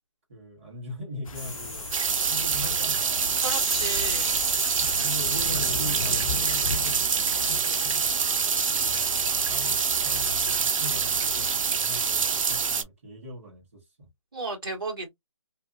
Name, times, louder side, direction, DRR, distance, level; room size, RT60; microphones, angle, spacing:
voice 1, 0.3-1.9 2.3-3.4 4.8-8.3 8.7-14.1, equal, 25° right, 1.0 m, -40 dB
sound 1, 1.3-12.8, left 4 dB, 85° left, 0.4 m, -39 dB
sound 2, 1.3-11.2, equal, ahead, 0.7 m, -38 dB
sound 3, 1.9-12.8, right 6 dB, 75° right, 0.4 m, -26 dB
voice 2, 3.4-4.3 14.3-15.1, right 3 dB, 40° right, 1.3 m, -33 dB
2.6 x 2.4 x 2.4 m
hypercardioid pair, 175°, 17 cm